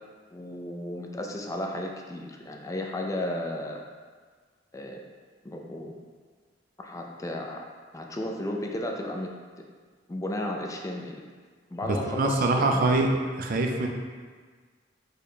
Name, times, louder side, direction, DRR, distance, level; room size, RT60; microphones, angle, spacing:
voice 1, 0.3-3.8 4.7-5.0 5.4-5.9 6.8-7.6 7.9-9.3 10.1-11.2 11.7-12.8, left 1 dB, 15° left, 1 dB, 0.4 m, -34 dB
voice 2, 12.1-13.1 13.4-13.9, right 2 dB, 50° right, 3 dB, 0.4 m, -24 dB
4.7 x 2.2 x 4.7 m, 1.5 s
head